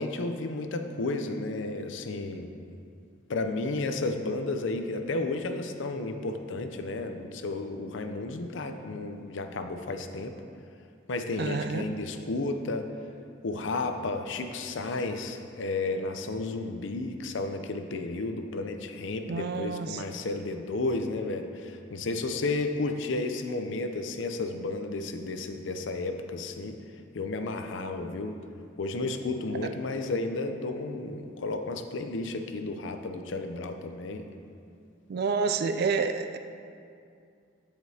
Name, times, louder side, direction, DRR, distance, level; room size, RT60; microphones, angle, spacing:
voice 1, 0.0-2.6 3.3-10.4 11.1-12.9 13.4-26.8 27.1-28.4 28.8-34.3, left 2 dB, 70° left, 6 dB, 0.5 m, -32 dB
voice 2, 11.4-11.9 19.3-20.0 29.6-29.7 35.1-36.4, right 5 dB, 55° right, 8 dB, 0.3 m, -29 dB
13.5 x 5.1 x 2.8 m, 2.4 s
head